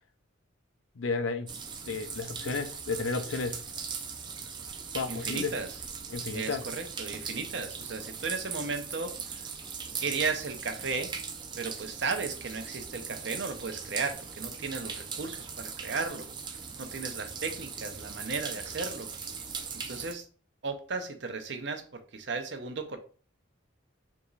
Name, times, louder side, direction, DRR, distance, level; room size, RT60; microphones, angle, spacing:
voice 1, 1.0-1.5 1.8-3.6 4.9-5.5 6.1-6.7, left 4 dB, 75° left, 0.5 m, -32 dB
sound 1, 1.5-20.1, right 6 dB, 25° right, 0.4 m, -39 dB
voice 2, 5.1-5.7 6.3-9.5 10.0-11.1 11.6-16.3 16.8-19.1 19.9-20.2 20.6-23.0, right 4 dB, 60° right, 0.7 m, -35 dB
3.6 x 3.0 x 3.9 m
head